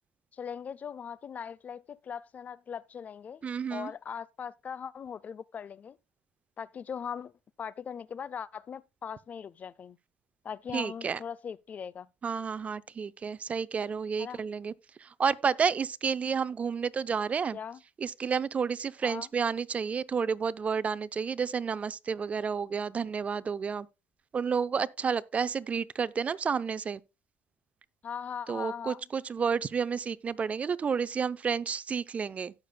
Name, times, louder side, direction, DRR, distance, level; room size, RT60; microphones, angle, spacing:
voice 1, 0.3-3.4 3.7-6.0 6.6-7.3 7.6-10.0 10.4-12.1 14.2-14.4 17.5-17.8 19.0-19.3 28.0-29.0, left 7 dB, 40° left, 0.4 m, -40 dB
voice 2, 3.4-3.9 10.7-11.2 12.2-14.7 15.0-17.6 18.0-23.9 24.3-27.0 28.5-32.5, right 6 dB, 35° right, 0.5 m, -30 dB
17.0 x 6.7 x 2.2 m
supercardioid pair, 85°, 4 cm